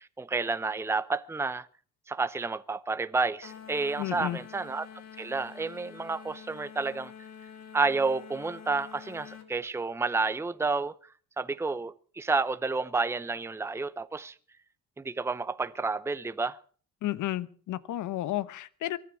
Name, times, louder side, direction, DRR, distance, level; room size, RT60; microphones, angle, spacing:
voice 1, 0.0-1.7 2.1-4.9 5.2-7.1 7.7-11.0 11.4-14.4 15.0-16.6, right 3 dB, 10° right, 0.7 m, -30 dB
sound 1, 3.4-9.5, left 7 dB, 60° left, 3.4 m, -47 dB
voice 2, 4.0-4.4 17.0-19.0, left 14 dB, 85° left, 1.0 m, -32 dB
23.5 x 10.0 x 6.0 m
cardioid pair, 90°, 30 cm